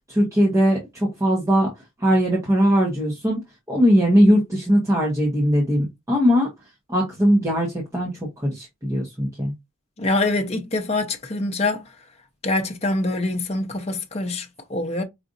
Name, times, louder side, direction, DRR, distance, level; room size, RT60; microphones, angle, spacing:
voice 1, 0.1-1.7 2.0-3.4 3.7-6.5 6.9-8.1 8.4-9.5, equal, 15° right, 0.9 m, -20 dB
voice 2, 10.0-11.9 12.4-15.0, left 2 dB, 30° left, 0.6 m, -25 dB
4.9 x 2.4 x 2.6 m
head